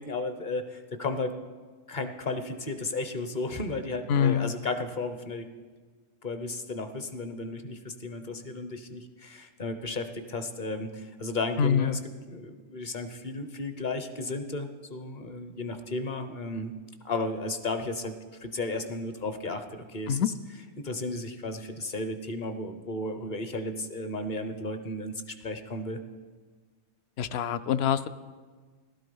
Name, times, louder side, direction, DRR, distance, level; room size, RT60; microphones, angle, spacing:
voice 1, 0.0-1.3 1.9-5.5 6.2-12.0 12.3-16.7 17.0-18.1 18.4-20.3 20.8-26.0, left 2 dB, 40° left, 9 dB, 1.0 m, -34 dB
voice 2, 4.1-4.5 11.6-12.0 20.1-20.3 27.2-28.1, left 8 dB, 65° left, 14 dB, 0.7 m, -25 dB
15.0 x 12.5 x 5.4 m, 1.5 s
omnidirectional pair, 1.3 m